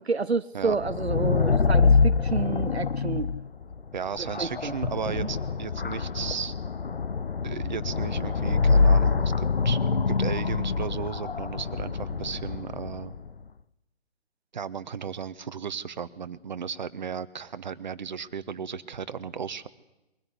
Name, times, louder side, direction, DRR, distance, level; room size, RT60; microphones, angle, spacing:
voice 1, 0.0-3.3 4.4-4.7 5.1-5.3, right 4 dB, 80° right, 15 dB, 0.9 m, -29 dB
sound 1, 0.7-13.3, left 4 dB, 65° left, 0.9 m, -25 dB
voice 2, 3.9-6.5 7.4-13.1 14.5-19.7, right 7 dB, 45° right, 13 dB, 1.1 m, -35 dB
22.5 x 16.0 x 9.9 m, 0.98 s
figure-of-eight pair, 140°, 31 cm